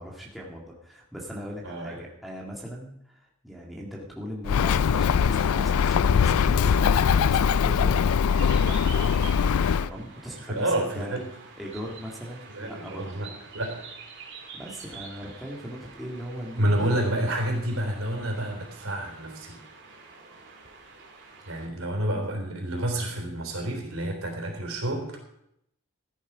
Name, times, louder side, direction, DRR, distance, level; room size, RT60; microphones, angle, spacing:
voice 1, 0.0-8.1 8.6-8.8 9.8-11.2 11.5-13.2 14.5-17.0, equal, ahead, -3 dB, 1.8 m, -39 dB
voice 2, 1.6-2.0 10.5-11.2 12.5-13.3 13.5-13.8 16.6-19.6 21.5-25.2, right 1 dB, 70° right, 1 dB, 3.8 m, -29 dB
Bird, 4.4-9.9, left 7 dB, 85° left, 0.4 m, -22 dB
sound 1, 8.3-21.7, right 5 dB, 55° right, 2.6 m, -46 dB
14.5 x 10.0 x 5.0 m, 0.75 s
head